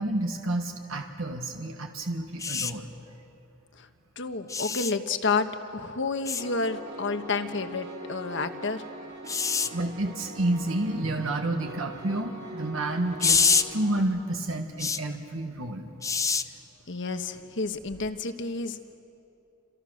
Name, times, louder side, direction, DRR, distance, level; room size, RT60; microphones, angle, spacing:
voice 1, 0.0-2.9 9.7-15.9, right 1 dB, 75° right, 4 dB, 1.7 m, -30 dB
sound 1, 2.4-2.7 4.5-4.9 6.3-6.4 9.3-9.7 13.2-13.6 14.8-15.0 16.0-16.4 17.9-18.1, left 5 dB, 15° left, 0.6 m, -25 dB
voice 2, 4.2-5.5 5.7-8.8 16.9-18.8, left 4 dB, 60° left, 8 dB, 1.3 m, -30 dB
Piano, 6.4-14.0, right 1 dB, 60° right, 5.1 m, -42 dB
29.5 x 27.0 x 6.5 m, 2.7 s
head